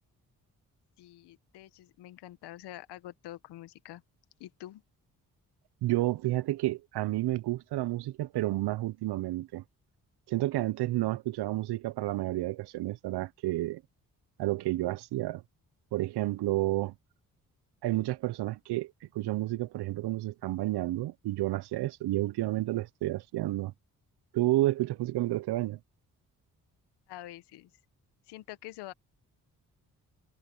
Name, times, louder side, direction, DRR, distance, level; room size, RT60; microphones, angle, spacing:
voice 1, 1.0-4.0 4.4-4.8 27.1-27.7 28.3-28.9, left 14 dB, 85° left, 1.5 m, -46 dB
voice 2, 5.8-9.6 10.3-13.8 14.4-15.4 15.9-16.9 17.8-23.7 24.3-25.8, right 16 dB, 80° right, 0.9 m, -30 dB
supercardioid pair, 45°, 39 cm